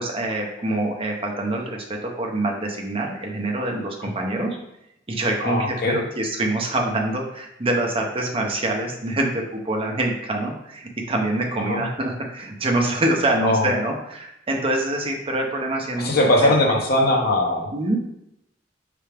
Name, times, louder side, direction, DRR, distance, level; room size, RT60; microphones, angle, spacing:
voice 1, 0.0-4.6 5.1-16.5 17.7-18.0, right 1 dB, 30° right, 1 dB, 0.7 m, -25 dB
voice 2, 5.4-6.0 11.7-11.8 13.4-13.7 16.0-17.7, left 1 dB, 55° left, 0 dB, 0.9 m, -20 dB
4.7 x 3.3 x 3.3 m, 0.82 s
head